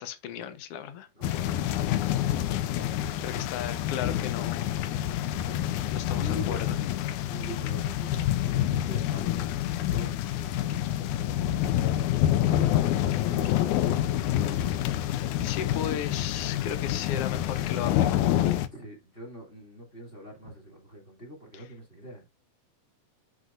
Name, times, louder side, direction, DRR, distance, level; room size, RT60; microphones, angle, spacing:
voice 1, 0.0-1.1 3.2-4.7 5.9-6.8 14.7-14.8 15.4-18.5 21.5-21.6, left 9 dB, 65° left, 1.7 m, -36 dB
voice 2, 1.1-3.8 5.3-6.6 7.3-11.8 12.5-13.2 18.7-22.3, equal, 20° left, 2.3 m, -45 dB
Soft rain and thunder, 1.2-18.7, left 12 dB, 80° left, 2.1 m, -27 dB
7.8 x 6.2 x 2.5 m
omnidirectional pair, 3.7 m